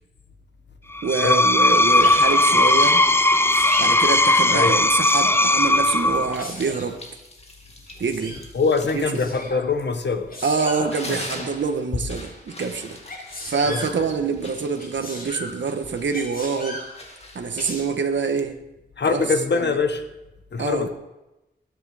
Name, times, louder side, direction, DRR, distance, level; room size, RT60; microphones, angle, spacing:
Screech, 0.9-6.4, left 2 dB, 15° left, 0.5 m, -18 dB
voice 1, 1.0-3.0 3.8-7.0 8.0-8.4 8.9-9.2 10.4-13.0 13.5-16.8 17.3-18.5 19.0-19.8 20.6-20.9, right 5 dB, 80° right, 6 dB, 1.3 m, -26 dB
Sneeze, 1.7-2.2 3.2-3.9 4.7-5.5 6.4-6.9 7.9-8.4 9.1-9.6 10.3-10.9 13.1-13.9 14.8-15.5 16.1-16.9 17.6-17.8, left 1 dB, 55° left, 5.5 m, -35 dB
sound 1, 2.3-3.8 4.3-10.4 10.7-18.5, left 1 dB, 35° left, 2.5 m, -42 dB
voice 2, 8.5-10.3 13.6-14.1 19.0-20.0 20.5-20.9, left 4 dB, 70° left, 8 dB, 1.4 m, -23 dB
20.0 x 10.0 x 5.0 m, 0.97 s
wide cardioid pair, 120°, 19 cm